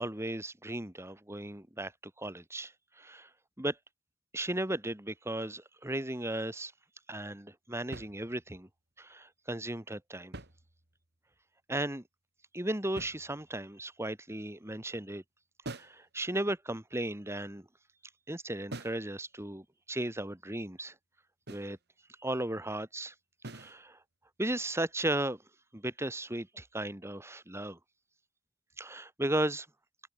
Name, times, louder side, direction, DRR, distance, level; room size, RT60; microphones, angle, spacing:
voice 1, 0.0-1.9 2.2-3.3 3.6-3.8 4.3-6.7 7.1-8.7 9.0-10.3 11.7-12.0 12.5-15.2 15.7-17.7 18.3-20.9 21.5-21.8 22.2-23.1 23.5-24.0 24.4-25.4 25.7-27.8 28.8-29.7, right 1 dB, 15° right, 2.2 m, -35 dB
sound 1, 7.9-8.7 10.1-11.2 13.0-13.7 15.6-16.1 18.7-19.1 21.5-21.8 23.4-23.8, right 2 dB, 55° right, 3.0 m, -46 dB
head